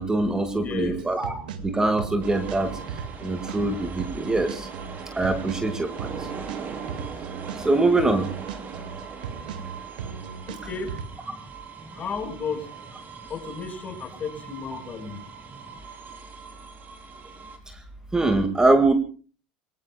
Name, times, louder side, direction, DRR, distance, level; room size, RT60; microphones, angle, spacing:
voice 1, 0.0-2.7 3.2-4.7 5.2-6.1 7.6-8.3 18.1-18.9, right 2 dB, 15° right, 8 dB, 1.9 m, -23 dB
voice 2, 0.5-1.0 10.5-11.0 11.3-11.4 12.0-12.7 13.3-15.2, left 5 dB, 35° left, 6 dB, 5.1 m, -33 dB
sound 1, 0.9-11.1, right 7 dB, 75° right, 1.9 m, -37 dB
sound 2, 2.2-17.6, right 6 dB, 40° right, 4.3 m, -40 dB
27.0 x 22.0 x 2.3 m, 0.39 s
hypercardioid pair, 75°, 5 cm